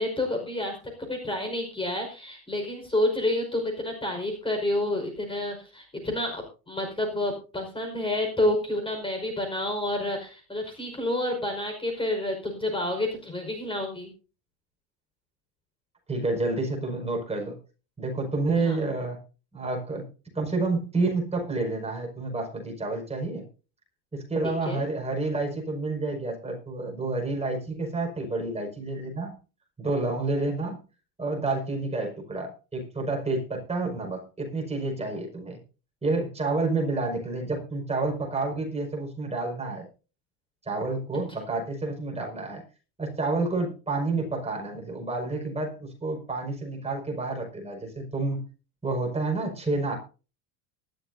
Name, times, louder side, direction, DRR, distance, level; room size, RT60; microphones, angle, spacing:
voice 1, 0.0-14.1 18.6-18.8 24.4-24.8, left 1 dB, 10° left, 4 dB, 5.1 m, -29 dB
voice 2, 16.1-17.6 18.0-19.2 19.5-20.0 20.3-23.4 24.1-29.3 29.8-30.8 31.2-35.6 36.0-39.9 40.7-42.6 43.0-48.4 48.8-50.0, right 3 dB, 15° right, 1 dB, 5.7 m, -29 dB
20.0 x 13.5 x 2.7 m, 0.35 s
supercardioid pair, 125°, 44 cm